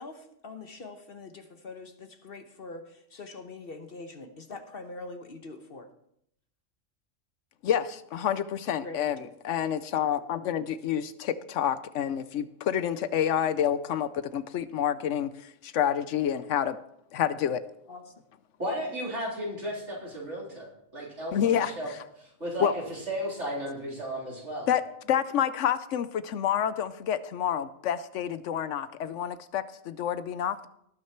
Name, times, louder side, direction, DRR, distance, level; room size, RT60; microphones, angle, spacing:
voice 1, 0.0-5.9 8.8-9.3 17.9-18.1, left 3 dB, 50° left, 7 dB, 1.1 m, -43 dB
voice 2, 7.6-16.8 17.1-17.6 21.3-21.7 22.6-22.7 24.7-24.8 25.1-30.7, left 9 dB, 75° left, 14 dB, 0.9 m, -28 dB
voice 3, 18.6-20.7 20.9-21.9 22.2-24.7, equal, 65° right, -4 dB, 4.0 m, -34 dB
18.5 x 6.3 x 4.5 m, 0.75 s
omnidirectional pair, 1.3 m